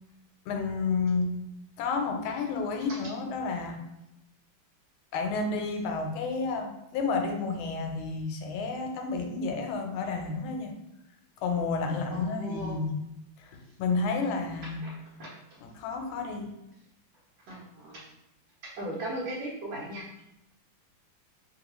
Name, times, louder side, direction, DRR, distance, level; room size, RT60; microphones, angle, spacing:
voice 1, 0.5-1.4 1.8-3.8 5.1-10.7 11.4-13.0 13.4-14.8 15.6-16.5, left 4 dB, 90° left, 3 dB, 1.4 m, -31 dB
voice 2, 12.1-12.8 15.2-15.3 17.5-18.0 18.8-20.0, right 1 dB, 75° right, -6 dB, 1.5 m, -37 dB
3.4 x 2.2 x 2.9 m, 0.87 s
omnidirectional pair, 2.2 m